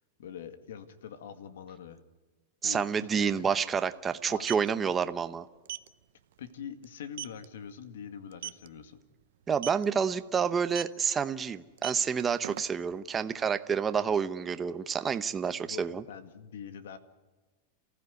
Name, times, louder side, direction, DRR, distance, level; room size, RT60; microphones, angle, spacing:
voice 1, 0.2-2.0 2.6-3.6 4.2-4.5 6.4-9.0 15.5-17.0, left 8 dB, 90° left, 10 dB, 2.0 m, -44 dB
voice 2, 2.6-5.5 9.5-16.0, right 6 dB, 15° right, 11 dB, 0.8 m, -29 dB
sound 1, 2.6-2.7 3.0-3.2 4.2-4.7 5.7-5.9 6.3-6.5 6.8-6.9 7.2-7.5 8.3-8.7 9.5-9.9 10.7-11.0 11.7-13.0, right 13 dB, 75° right, 0.7 m, -38 dB
28.5 x 15.5 x 9.5 m, 1.3 s
supercardioid pair, 150°, 0 cm